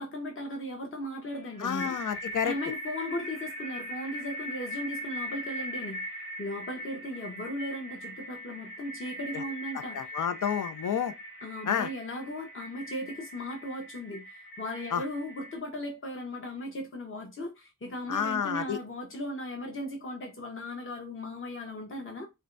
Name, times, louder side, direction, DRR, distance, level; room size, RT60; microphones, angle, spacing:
voice 1, 0.0-2.0 2.4-6.0 6.4-10.0 11.4-22.3, left 1 dB, 35° left, 0.9 m, -37 dB
sound 1, 1.3-15.6, equal, 85° left, 1.5 m, -40 dB
voice 2, 1.6-2.5 9.3-9.4 9.9-11.1 11.7-11.9 14.9-15.0 18.1-18.8, left 8 dB, 65° left, 0.5 m, -29 dB
4.3 x 2.2 x 2.5 m
wide cardioid pair, 45°, 35 cm